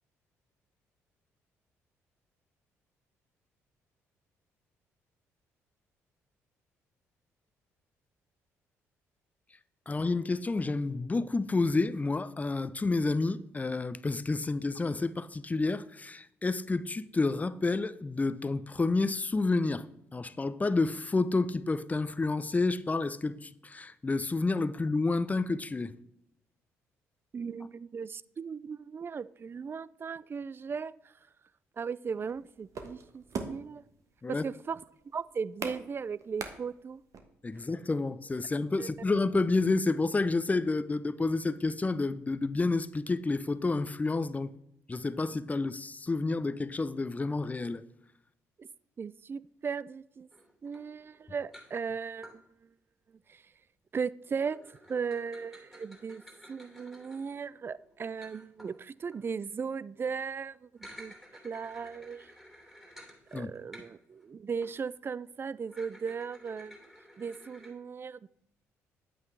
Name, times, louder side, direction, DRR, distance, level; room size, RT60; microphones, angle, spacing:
voice 1, 9.9-19.9 20.1-25.9 34.2-34.4 37.4-44.5 44.9-47.8 63.3-63.5, left 3 dB, 25° left, 0.6 m, -29 dB
voice 2, 27.3-31.1 31.8-33.8 34.3-34.8 35.1-37.0 38.8-38.9 48.6-48.7 49.0-50.3 50.6-52.4 53.3-53.4 53.9-56.2 56.5-61.1 61.4-62.3 63.3-66.8 67.2-68.3, right 6 dB, 35° right, 0.4 m, -37 dB
sound 1, 32.2-37.2, right 5 dB, 55° right, 1.3 m, -41 dB
sound 2, 50.3-52.4 54.4-59.4 60.6-64.3 64.6-64.8 65.7-67.7, equal, 5° right, 3.1 m, -54 dB
9.2 x 8.1 x 3.3 m
hypercardioid pair, 55°, 7 cm